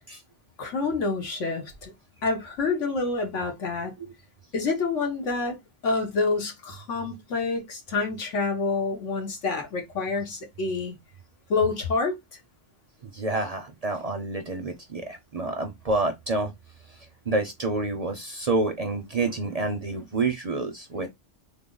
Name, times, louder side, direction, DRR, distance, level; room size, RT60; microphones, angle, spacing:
voice 1, 0.6-1.9 2.2-3.9 4.5-5.6 5.8-10.9 11.5-12.2, left 3 dB, 90° left, 1.5 m, -27 dB
voice 2, 13.1-16.5 17.3-21.1, right 3 dB, 45° right, 0.5 m, -28 dB
3.6 x 2.0 x 3.7 m
omnidirectional pair, 1.2 m